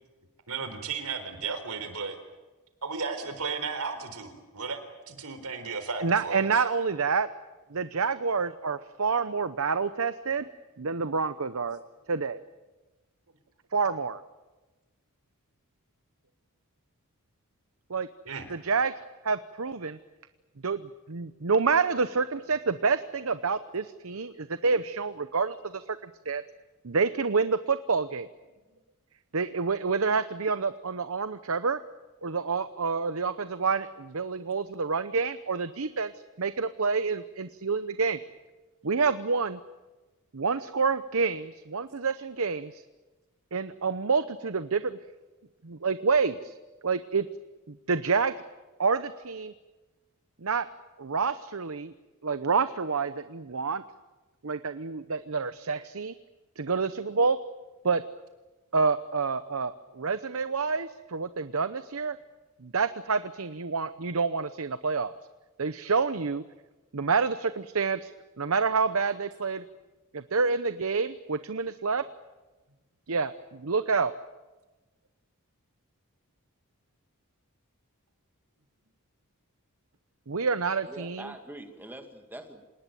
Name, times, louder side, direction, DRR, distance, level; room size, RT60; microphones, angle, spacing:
voice 1, 0.5-2.2 2.8-4.8 5.1-6.6 18.3-18.5, right 5 dB, 85° right, 9 dB, 4.0 m, -34 dB
voice 2, 6.0-7.3 7.7-10.5 10.8-11.8 12.1-12.4 13.7-14.2 17.9-18.1 18.5-18.9 19.2-20.0 20.6-26.4 26.8-28.3 29.3-31.8 32.2-36.1 36.4-38.2 38.8-39.6 40.3-42.8 43.5-45.0 45.6-46.6 46.8-47.3 47.7-48.3 48.8-49.5 50.4-50.7 51.0-51.9 52.2-53.8 54.4-56.1 56.6-57.4 57.8-58.0 58.7-62.1 62.6-65.1 65.6-66.4 66.9-68.1 68.4-69.6 70.1-72.0 73.1-74.1 80.3-81.3, right 4 dB, 65° right, 12 dB, 0.9 m, -28 dB
voice 3, 80.9-82.6, right 1 dB, 10° right, 5 dB, 2.1 m, -43 dB
27.0 x 19.5 x 9.2 m, 1.1 s
head